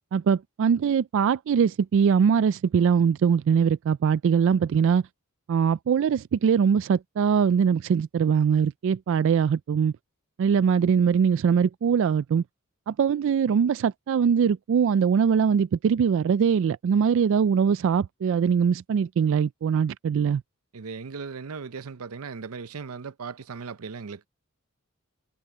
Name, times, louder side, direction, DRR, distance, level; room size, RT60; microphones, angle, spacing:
voice 1, 0.1-5.0 5.5-9.9 10.4-12.4 12.9-20.4, right 7 dB, 60° right, 0.3 m, -22 dB
voice 2, 20.7-24.3, right 5 dB, 90° right, 0.7 m, -37 dB
head